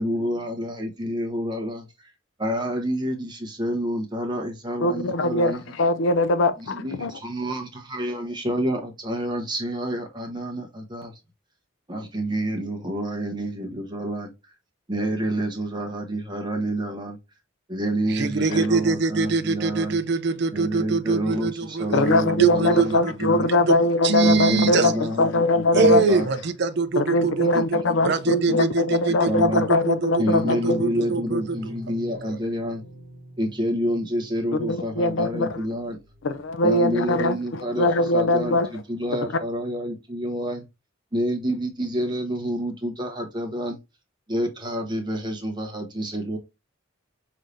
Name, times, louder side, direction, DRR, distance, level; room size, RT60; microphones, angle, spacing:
voice 1, 0.0-2.1 2.4-5.6 6.6-11.2 11.9-14.5 14.9-17.2 17.7-20.0 20.5-23.5 24.2-26.3 27.1-28.1 28.4-28.7 29.1-29.6 30.2-32.8 33.4-36.0 36.6-37.9 38.1-40.7 41.1-43.8 44.3-46.4, equal, 20° right, 1.0 m, -28 dB
voice 2, 4.8-7.1 18.5-18.6 21.9-26.0 27.0-30.8 34.6-35.6 36.2-38.7 39.1-39.3, left 2 dB, 65° left, 0.5 m, -22 dB
voice 3, 18.1-23.3 23.7-23.8 24.0-24.9 25.7-27.6 28.0-31.7 32.2-32.4, right 4 dB, 55° right, 0.5 m, -24 dB
sound 1, 30.4-36.5, right 2 dB, 70° right, 1.3 m, -42 dB
5.6 x 3.2 x 2.6 m
head